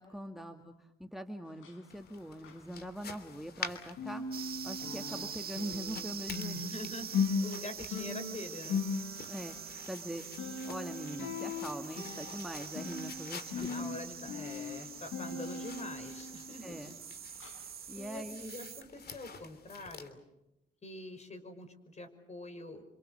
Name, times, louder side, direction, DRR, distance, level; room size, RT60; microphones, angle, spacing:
voice 1, 0.0-4.2 4.6-6.5 9.2-10.2 10.6-14.0 16.6-16.9 17.9-18.4, equal, ahead, 6 dB, 1.9 m, -42 dB
sound 1, 1.5-3.6 3.9-17.0 17.4-17.6 18.1-18.2, left 5 dB, 85° left, 5.7 m, -39 dB
sound 2, 1.9-20.1, left 5 dB, 50° left, 3.0 m, -50 dB
sound 3, 4.3-18.8, right 8 dB, 50° right, 1.5 m, -45 dB
voice 2, 6.5-8.8 13.5-16.8 17.6-17.7 17.9-20.2 20.8-22.8, left 2 dB, 35° left, 8 dB, 5.5 m, -45 dB
30.0 x 26.0 x 6.7 m, 0.87 s
cardioid pair, 90°, 20 cm